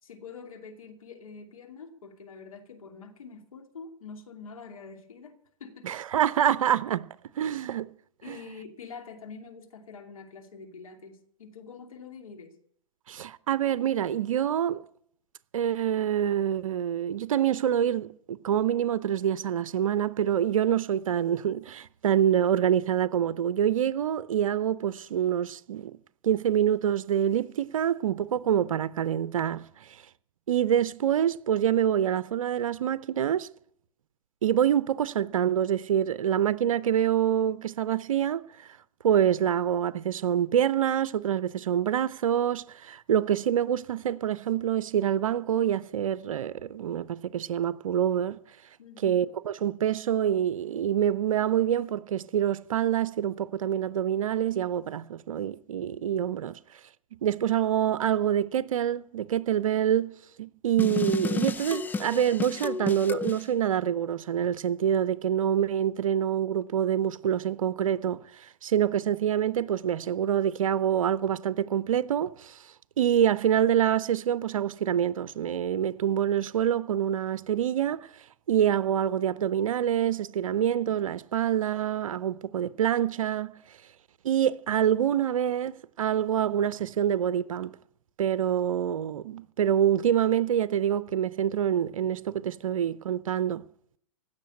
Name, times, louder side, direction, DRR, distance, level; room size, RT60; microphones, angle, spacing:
voice 1, 0.0-5.3 5.6-6.0 8.2-12.6 48.8-49.2, left 5 dB, 75° left, 2.7 m, -45 dB
voice 2, 5.8-7.1 7.4-7.9 8.3-8.4 13.1-14.8 15.5-26.0 26.2-30.0 30.5-33.5 34.4-38.7 39.0-48.4 49.0-56.6 57.2-60.1 60.4-72.6 73.0-78.1 78.5-83.5 84.2-87.7 88.2-93.6, right 10 dB, 70° right, 0.6 m, -26 dB
sound 1, 60.8-63.4, left 4 dB, 10° left, 0.5 m, -31 dB
16.5 x 6.6 x 9.8 m
hypercardioid pair, 110°, 18 cm